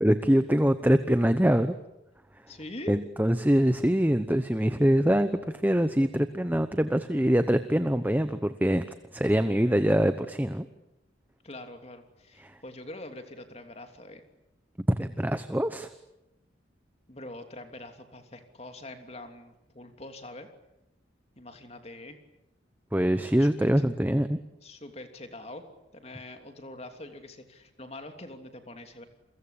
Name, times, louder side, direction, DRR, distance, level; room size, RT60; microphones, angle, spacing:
voice 1, 0.0-1.7 2.9-8.8 9.1-10.7 12.4-12.6 14.9-15.9 22.9-24.4, equal, 10° right, 10 dB, 0.9 m, -24 dB
voice 2, 2.5-2.9 11.4-14.2 17.1-20.5 21.4-22.2 23.2-23.9 24.6-25.7 25.9-29.0, left 1 dB, 35° left, 6 dB, 3.1 m, -44 dB
29.5 x 23.0 x 8.7 m, 0.90 s
head